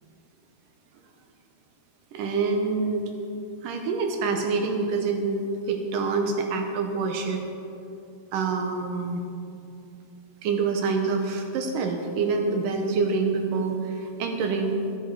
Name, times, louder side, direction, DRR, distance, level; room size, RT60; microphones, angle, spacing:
voice 1, 2.1-3.0 3.6-7.4 8.3-9.2 10.4-14.8, right 4 dB, 75° right, 4 dB, 2.2 m, -26 dB
12.5 x 10.5 x 4.8 m, 2.6 s
omnidirectional pair, 4.3 m